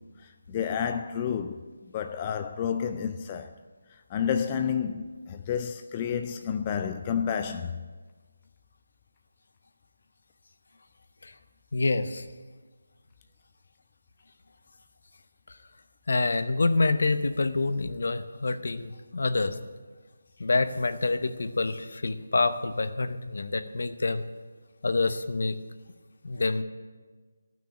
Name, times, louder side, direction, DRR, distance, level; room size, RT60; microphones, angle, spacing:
voice 1, 0.2-3.6 3.9-7.8, left 7 dB, 25° left, 0.4 m, -30 dB
voice 2, 11.7-12.2 16.1-19.5 20.4-24.2 24.8-25.6 26.2-26.6, left 3 dB, 65° left, 0.8 m, -27 dB
12.5 x 6.2 x 8.6 m
figure-of-eight pair, 160°, 0 cm